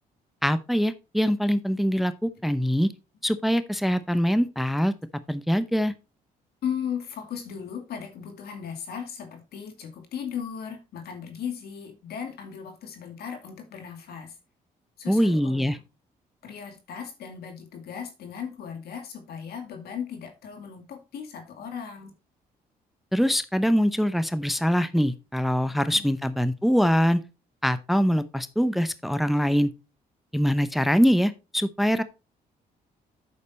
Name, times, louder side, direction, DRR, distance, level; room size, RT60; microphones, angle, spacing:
voice 1, 0.4-2.9 3.2-4.9 5.3-5.9 15.1-15.8 23.1-27.2 27.6-29.7 30.3-32.0, equal, ahead, 0.7 m, -23 dB
voice 2, 6.6-14.4 15.0-15.8 16.4-22.1 25.7-26.1, left 7 dB, 75° left, 2.3 m, -37 dB
8.5 x 6.5 x 4.2 m
cardioid pair, 85°, 17 cm